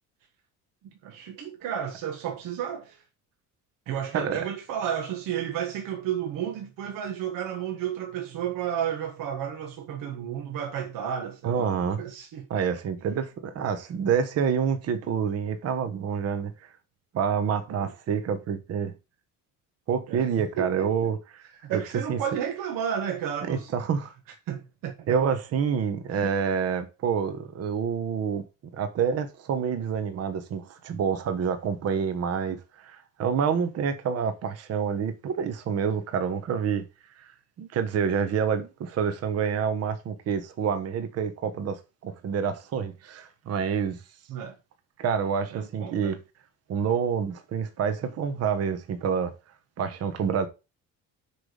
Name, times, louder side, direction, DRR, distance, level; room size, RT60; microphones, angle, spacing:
voice 1, 1.0-3.0 3.9-12.5 17.8-17.9 20.1-20.3 20.6-21.1 21.6-23.7 24.5-25.2 26.1-26.3 44.3-44.5 45.5-46.2, right 9 dB, 70° right, 1.6 m, -32 dB
voice 2, 11.4-12.0 12.5-16.5 17.1-18.9 19.9-21.4 21.7-21.8 22.1-22.2 23.5-24.1 25.1-28.4 28.7-36.8 37.2-37.3 37.6-44.0 45.0-46.2 46.7-49.3 49.8-50.5, right 7 dB, 45° right, 1.3 m, -27 dB
6.1 x 5.1 x 6.5 m
cardioid pair, 165°, 34 cm